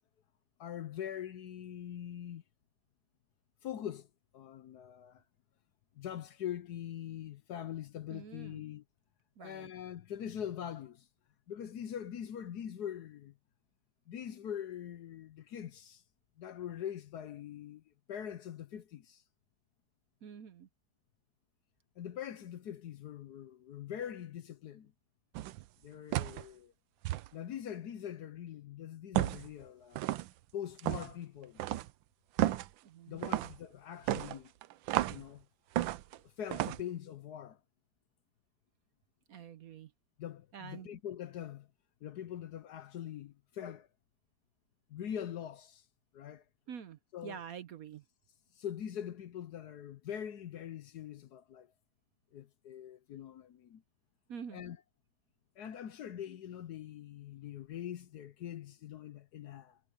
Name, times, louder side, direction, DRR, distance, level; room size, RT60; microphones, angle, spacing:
voice 1, 0.6-2.4 3.6-4.1 4.3-5.2 6.0-8.8 9.4-11.1 11.5-13.3 14.1-16.0 16.4-19.2 22.0-24.9 25.8-26.7 27.3-30.1 30.5-31.6 33.1-34.5 35.1-35.4 36.2-37.6 40.2-41.7 42.0-43.9 44.9-45.8 46.1-46.4 47.1-47.4 48.5-51.7 52.3-53.8 54.5-54.8 55.6-59.8, left 10 dB, 65° left, 1.2 m, -43 dB
voice 2, 8.1-8.6 9.4-9.7 20.2-20.7 32.8-33.4 39.3-39.9 40.5-40.9 46.7-48.0 54.3-54.6, right 8 dB, 60° right, 1.0 m, -47 dB
sound 1, 25.4-25.6 26.1-26.5 27.1-27.3 29.2-29.5 30.0-30.3 30.8-31.1 31.6-31.9 32.4-32.7 33.2-33.6 34.1-35.3 35.8-36.2 36.5-36.8, right 14 dB, 85° right, 1.4 m, -32 dB
omnidirectional pair, 2.0 m